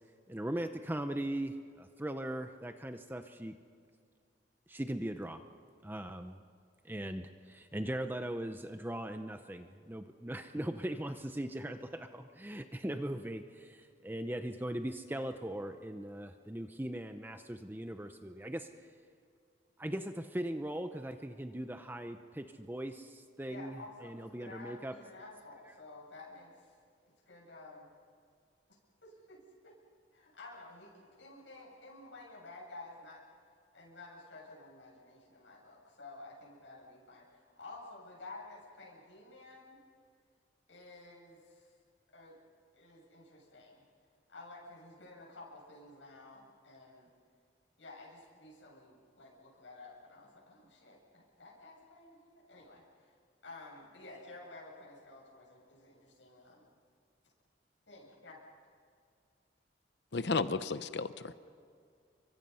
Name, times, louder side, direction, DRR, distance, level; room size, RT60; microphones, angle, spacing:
voice 1, 0.3-3.5 4.7-5.4 5.8-6.4 6.8-18.7 19.8-24.9, right 1 dB, 10° right, 7 dB, 0.7 m, -39 dB
voice 2, 23.5-26.7 27.3-27.9 29.0-29.8 30.1-33.2 33.7-39.8 40.7-41.7 42.1-42.4 42.8-43.9 44.3-47.1 47.8-53.1 53.4-56.7 57.9-58.4, left 2 dB, 80° left, -4 dB, 7.9 m, -52 dB
voice 3, 60.1-61.3, left 4 dB, 65° left, 12 dB, 0.8 m, -33 dB
29.5 x 24.0 x 5.6 m, 2.2 s
head